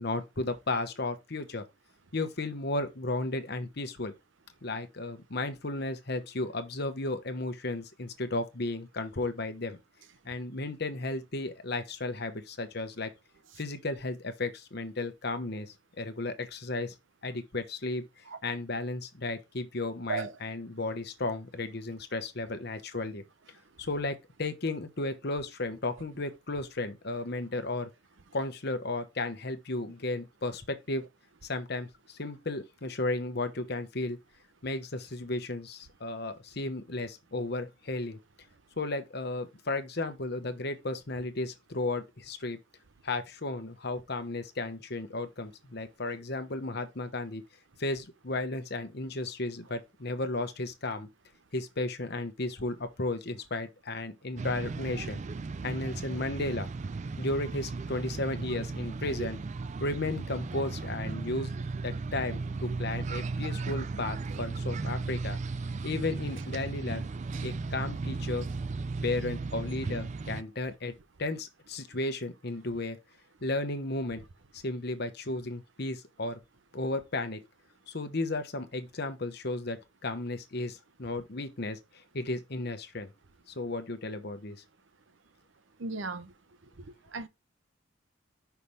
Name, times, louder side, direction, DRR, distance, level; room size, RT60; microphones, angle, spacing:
voice 1, 0.0-1.6 2.1-4.1 4.6-9.8 10.2-13.1 13.6-16.9 17.2-23.2 23.8-27.9 28.3-31.0 31.5-34.2 34.6-38.2 38.8-42.6 43.0-47.4 47.8-51.1 51.5-55.2 55.6-56.7 57.2-59.4 59.8-61.5 61.8-65.4 65.8-67.0 67.4-68.5 69.0-73.0 73.4-74.2 74.5-76.4 76.7-77.4 77.9-83.1 83.6-84.6, left 2 dB, 55° left, 1.0 m, -34 dB
sound 1, 54.4-70.4, right 3 dB, 35° right, 0.3 m, -36 dB
voice 2, 85.8-86.3 87.1-87.3, right 4 dB, 70° right, 0.7 m, -33 dB
5.8 x 3.3 x 5.5 m
head